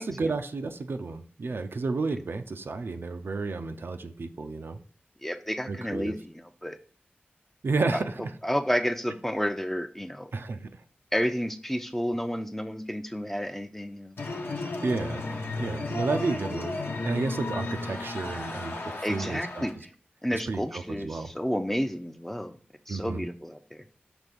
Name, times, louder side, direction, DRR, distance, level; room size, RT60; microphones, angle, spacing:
voice 1, 0.0-4.8 5.7-6.1 7.6-8.2 10.3-10.7 14.8-15.3 15.6-19.7 20.3-21.3 22.9-23.3, right 3 dB, 80° right, 6 dB, 0.5 m, -31 dB
voice 2, 5.2-6.8 8.4-10.3 11.1-14.2 19.0-19.7 20.2-22.5 22.9-23.8, equal, 10° left, 8 dB, 0.5 m, -31 dB
sound 1, 14.2-19.7, left 2 dB, 85° left, 1.0 m, -34 dB
6.1 x 3.3 x 5.3 m, 0.44 s
wide cardioid pair, 80°, 4 cm